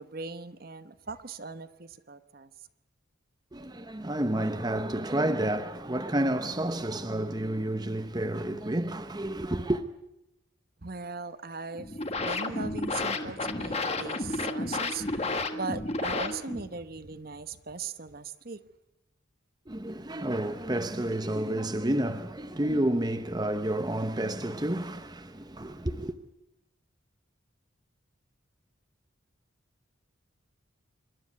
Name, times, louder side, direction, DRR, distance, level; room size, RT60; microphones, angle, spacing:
voice 1, 0.0-2.5 10.8-12.0 12.2-18.6, right 4 dB, 45° right, 1.0 m, -39 dB
voice 2, 3.5-9.8 19.7-26.1, right 1 dB, 20° right, 0.8 m, -30 dB
sound 1, 11.7-16.7, left 2 dB, 30° left, 1.5 m, -32 dB
27.0 x 12.5 x 9.4 m
head